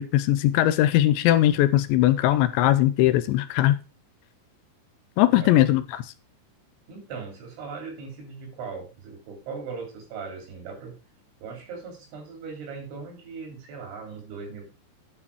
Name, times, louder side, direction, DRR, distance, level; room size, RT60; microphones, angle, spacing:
voice 1, 0.0-3.8 5.2-5.8, left 14 dB, 80° left, 14 dB, 3.0 m, -20 dB
voice 2, 5.3-5.7 6.9-11.0 11.4-14.7, right 5 dB, 80° right, 2 dB, 5.8 m, -39 dB
9.9 x 6.2 x 4.8 m, 0.30 s
omnidirectional pair, 5.3 m